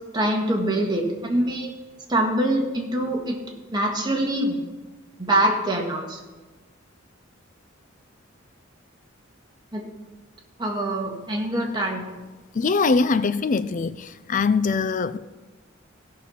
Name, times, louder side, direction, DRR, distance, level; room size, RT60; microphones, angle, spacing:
voice 1, 0.1-1.7 2.1-3.4 3.7-4.6 5.2-6.2 9.7-9.9 10.6-12.1, right 1 dB, 20° right, -1 dB, 1.7 m, -24 dB
voice 2, 12.5-15.2, left 4 dB, 40° left, 14 dB, 0.4 m, -22 dB
16.0 x 5.6 x 5.9 m, 1.2 s
head